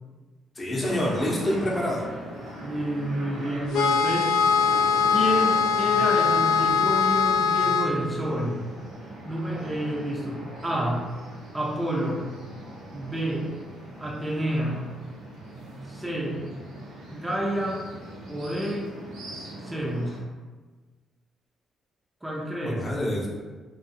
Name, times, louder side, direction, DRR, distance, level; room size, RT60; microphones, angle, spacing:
voice 1, 0.6-2.0 22.6-23.3, left 1 dB, 30° left, -3 dB, 0.7 m, -27 dB
sound 1, 0.8-20.2, right 1 dB, 90° right, 0.7 m, -40 dB
voice 2, 2.6-4.3 5.1-8.6 9.2-11.0 11.5-12.3 12.9-13.5 14.0-14.8 15.9-16.4 17.1-17.8 18.3-18.9 19.6-20.2 22.2-22.9, equal, 15° right, -3 dB, 0.4 m, -29 dB
sound 2, 3.7-7.9, left 6 dB, 80° left, 0.3 m, -22 dB
2.4 x 2.4 x 2.7 m, 1.3 s
cardioid pair, 90°, 0 cm